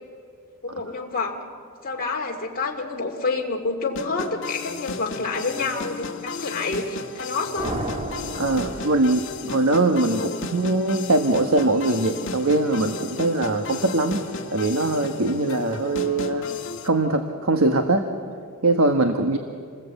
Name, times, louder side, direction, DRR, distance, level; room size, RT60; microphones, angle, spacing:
voice 1, 0.6-1.4 1.8-7.7 10.1-10.5, left 3 dB, 40° left, -1 dB, 2.5 m, -28 dB
sound 1, 3.9-16.9, left 4 dB, 60° left, 1.8 m, -34 dB
sound 2, 7.6-9.8, right 1 dB, 30° right, 1.5 m, -33 dB
voice 2, 8.3-14.2 14.5-16.5 16.8-18.1 18.6-19.4, right 2 dB, 65° right, 5 dB, 1.4 m, -22 dB
28.0 x 20.0 x 8.2 m, 2.2 s
head